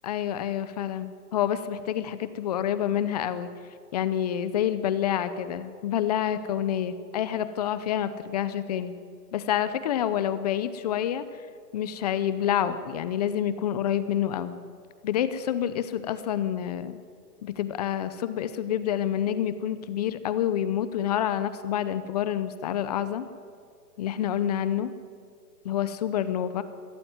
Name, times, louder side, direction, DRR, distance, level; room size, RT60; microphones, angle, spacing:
voice 1, 0.0-3.5 3.9-9.0 9.3-11.5 11.7-14.5 15.0-17.0 17.4-23.3 24.0-24.9 25.6-26.6, left 10 dB, 25° left, 13 dB, 0.7 m, -28 dB
20.0 x 13.5 x 9.4 m, 2.2 s
hypercardioid pair, 145°, 49 cm